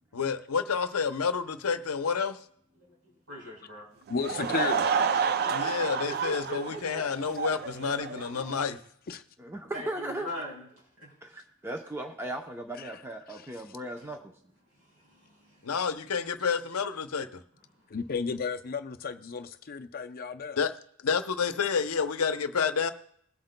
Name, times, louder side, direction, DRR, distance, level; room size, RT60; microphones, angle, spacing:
voice 1, 0.1-2.4 5.5-8.8 15.6-17.4 20.6-20.7 21.0-22.9, left 6 dB, 90° left, 10 dB, 0.7 m, -29 dB
voice 2, 2.8-3.9 6.1-7.0 9.7-10.6 11.0-11.1 14.9-15.7, equal, 65° right, -2 dB, 4.5 m, -41 dB
voice 3, 4.1-4.9 9.1-9.2 12.8-13.0 13.3-13.6 17.9-20.6, left 5 dB, 45° left, 7 dB, 0.5 m, -34 dB
Laughter / Crowd, 4.1-8.6, right 6 dB, 45° right, 0.4 m, -30 dB
voice 4, 9.4-10.3 11.2-14.3, right 1 dB, 10° right, 3 dB, 0.6 m, -37 dB
21.0 x 7.8 x 2.2 m, 0.69 s
head